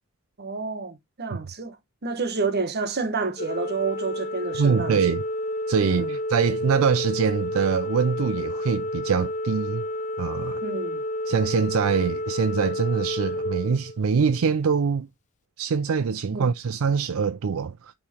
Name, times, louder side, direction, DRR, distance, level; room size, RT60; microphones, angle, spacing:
voice 1, 0.4-1.8 2.0-5.1 5.8-6.2 10.6-11.0 16.3-16.5, right 4 dB, 50° right, 1.1 m, -29 dB
Organ, 3.4-14.5, left 1 dB, 35° left, 0.5 m, -30 dB
voice 2, 4.6-5.2 5.7-9.8 10.2-10.6 11.3-15.1 15.6-17.9, right 6 dB, 75° right, 0.4 m, -24 dB
8.4 x 3.2 x 4.2 m
head